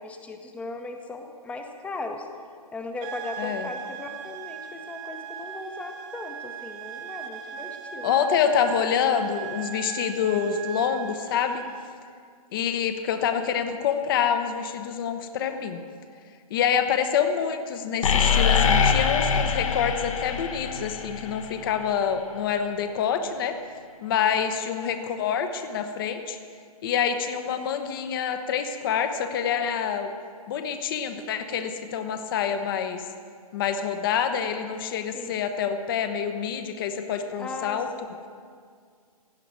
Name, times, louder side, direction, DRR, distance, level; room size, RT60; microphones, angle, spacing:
voice 1, 0.0-2.3 2.7-8.3 35.1-35.3 37.4-38.1, left 3 dB, 5° left, 5 dB, 0.9 m, -37 dB
sound 1, 3.0-11.9, right 9 dB, 20° right, 0.6 m, -39 dB
voice 2, 3.4-3.7 8.0-11.6 12.5-15.8 16.5-23.5 24.0-26.4 26.8-30.1 30.5-33.0 33.5-37.9, left 8 dB, 35° left, 8 dB, 0.9 m, -26 dB
sound 2, 18.0-21.9, left 6 dB, 55° left, 1.2 m, -23 dB
16.5 x 5.9 x 9.9 m, 2.1 s
figure-of-eight pair, 135°, 19 cm